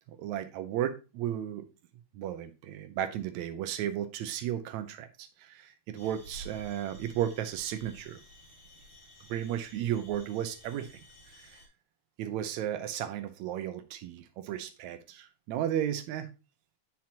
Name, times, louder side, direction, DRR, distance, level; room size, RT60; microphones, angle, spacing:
voice 1, 0.2-1.7 2.1-8.2 9.3-11.0 11.4-11.6 12.2-16.3, right 10 dB, 75° right, 9 dB, 1.7 m, -34 dB
sound 1, 5.9-11.7, right 1 dB, 35° left, 3.5 m, -52 dB
8.9 x 5.9 x 2.8 m, 0.29 s
omnidirectional pair, 3.8 m